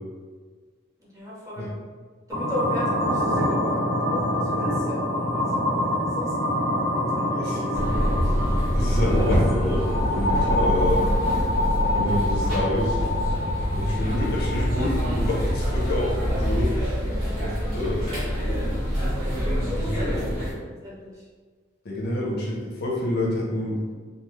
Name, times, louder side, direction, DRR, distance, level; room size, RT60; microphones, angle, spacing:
voice 1, 1.0-1.7 2.3-5.8 6.1-6.4 6.9-7.7 8.0-8.4 17.2-18.1 19.6-20.4 20.6-21.3, left 1 dB, 15° right, -6 dB, 0.8 m, -36 dB
sound 1, 2.3-16.3, left 1 dB, 50° right, 1.1 m, -26 dB
voice 2, 7.3-7.7 8.7-11.2 12.0-13.0 13.7-17.0 17.4-17.5 17.7-18.0 19.6-20.3 21.8-23.8, left 1 dB, 55° left, -3 dB, 0.7 m, -28 dB
sound 2, 7.7-20.5, equal, 80° right, 1.3 m, -25 dB
3.4 x 2.0 x 3.0 m, 1.5 s
head